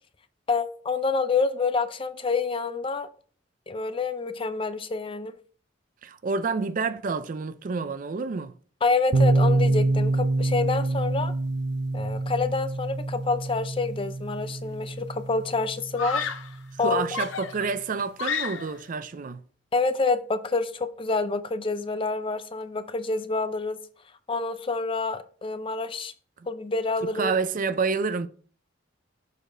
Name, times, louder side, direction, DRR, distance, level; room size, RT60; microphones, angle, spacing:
voice 1, 0.5-3.1 3.7-5.3 8.8-11.3 11.9-16.3 16.8-17.0 19.7-23.8 24.3-26.1 26.5-27.3, left 4 dB, 30° left, 0.5 m, -27 dB
voice 2, 6.0-8.5 16.8-19.4 27.1-28.3, right 4 dB, 45° right, 0.4 m, -28 dB
sound 1, 9.1-16.8, right 2 dB, 60° right, 0.8 m, -26 dB
Screaming, 14.4-14.9 16.0-16.6 17.1-18.9, left 5 dB, 90° left, 0.6 m, -32 dB
6.6 x 5.0 x 3.8 m
head